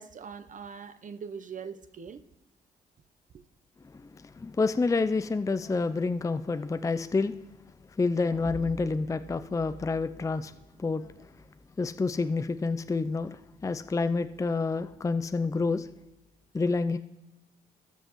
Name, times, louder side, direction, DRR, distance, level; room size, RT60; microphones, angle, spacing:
voice 1, 0.0-2.2 3.3-3.4, right 6 dB, 45° right, 0.8 m, -42 dB
voice 2, 3.8-7.4 8.0-10.5 10.8-11.3 11.8-15.9 16.5-17.0, left 3 dB, 15° left, 0.4 m, -28 dB
sound 1, 8.3-11.4, right 2 dB, 25° right, 2.7 m, -45 dB
18.5 x 6.3 x 3.1 m
supercardioid pair, 50°, 18 cm